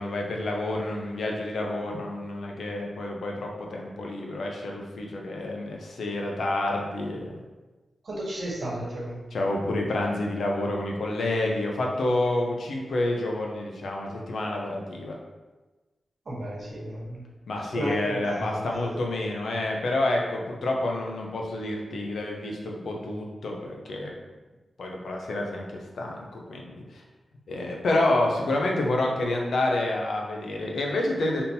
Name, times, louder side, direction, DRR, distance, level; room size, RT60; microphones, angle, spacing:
voice 1, 0.0-7.3 9.3-15.1 17.5-24.1 24.8-25.6 25.9-27.0 27.5-31.4, left 2 dB, 85° left, 0 dB, 0.7 m, -28 dB
voice 2, 8.0-9.2 16.2-17.2 17.6-18.9, right 1 dB, 60° right, -4 dB, 1.2 m, -33 dB
3.6 x 2.7 x 4.3 m, 1.2 s
wide cardioid pair, 100°, 0 cm